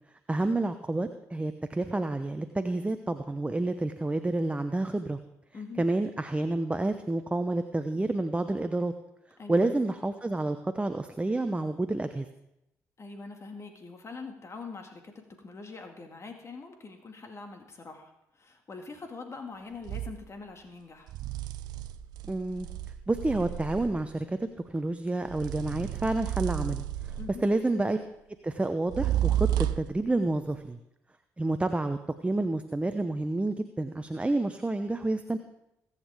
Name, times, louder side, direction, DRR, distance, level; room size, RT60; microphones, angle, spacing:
voice 1, 0.3-5.2 5.8-8.9 9.5-12.3 22.2-22.7 23.1-24.4 24.7-27.1 27.4-28.0 28.4-30.8 31.4-35.4, right 2 dB, 15° right, 8 dB, 0.8 m, -29 dB
voice 2, 5.5-5.8 9.4-9.7 13.0-21.1 27.2-27.4, left 4 dB, 40° left, 4 dB, 2.0 m, -44 dB
sound 1, 19.8-20.2 21.1-24.1 25.3-27.5 28.9-30.0, right 12 dB, 65° right, 0.5 m, -32 dB
22.0 x 8.3 x 3.5 m, 0.85 s
hypercardioid pair, 45°, 7 cm